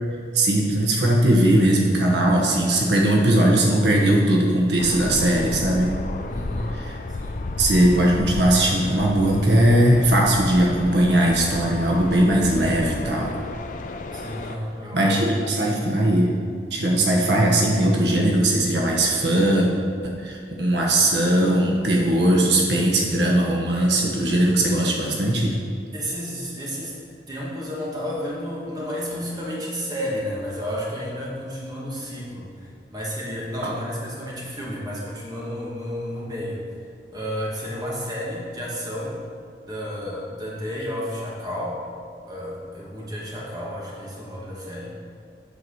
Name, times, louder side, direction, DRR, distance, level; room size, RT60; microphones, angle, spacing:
voice 1, 0.3-5.9 6.8-7.0 7.6-13.3 14.9-16.3 16.7-19.7 20.0-25.5, right 1 dB, 80° right, -1 dB, 1.2 m, -19 dB
sound 1, 4.8-14.6, left 2 dB, 45° left, 0.4 m, -32 dB
voice 2, 6.3-6.7 7.1-7.5 14.1-15.2 25.9-27.0 27.3-36.6 37.1-39.2 39.7-41.8 42.2-45.0, equal, 20° right, -5 dB, 1.6 m, -31 dB
8.3 x 4.7 x 6.3 m, 2.2 s
head